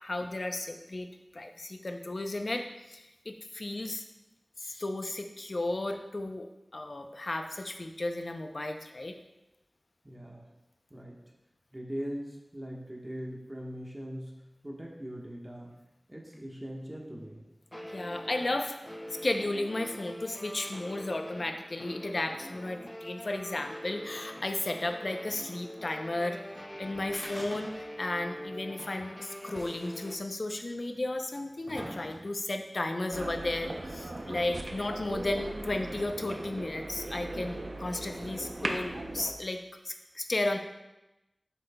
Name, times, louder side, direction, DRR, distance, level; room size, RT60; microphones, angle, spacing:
voice 1, 0.0-4.0 4.6-6.5 6.7-9.1 17.9-18.7 19.2-40.6, left 2 dB, 55° left, 5 dB, 0.6 m, -34 dB
voice 2, 10.0-10.5 10.9-11.2 11.7-14.3 14.6-15.8 16.1-17.4, equal, 20° right, -2 dB, 1.3 m, -40 dB
sound 1, 16.3-16.4 17.7-30.2, equal, 15° left, 0.6 m, -44 dB
sound 2, 27.1-28.1 28.4-28.5 29.4-29.5 30.4-30.5 31.2-32.5 33.4-33.5, equal, 5° right, 2.4 m, -43 dB
sound 3, 33.1-39.3, right 2 dB, 60° right, 0.6 m, -38 dB
7.9 x 6.5 x 2.3 m, 0.98 s
wide cardioid pair, 50°, 0 cm